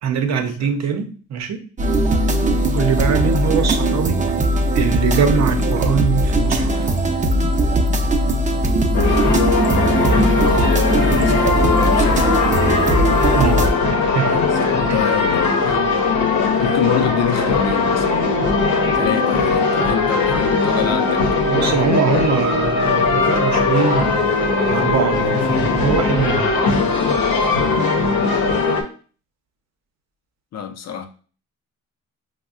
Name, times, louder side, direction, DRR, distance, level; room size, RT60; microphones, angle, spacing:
voice 1, 0.0-1.6 2.7-4.2 4.7-6.9 13.3-13.6 14.1-14.4 14.9-15.0 21.5-24.3 24.7-26.5, right 6 dB, 60° right, 0.7 m, -22 dB
sound 1, 1.8-13.7, right 1 dB, 25° right, 0.5 m, -19 dB
sound 2, 8.9-28.8, left 4 dB, 85° left, 0.8 m, -19 dB
voice 2, 9.7-12.3 14.6-15.6 16.5-18.1 18.7-21.2 27.6-28.0 30.5-31.1, left 8 dB, 60° left, 0.6 m, -27 dB
5.1 x 2.1 x 2.4 m
cardioid pair, 90°, 30 cm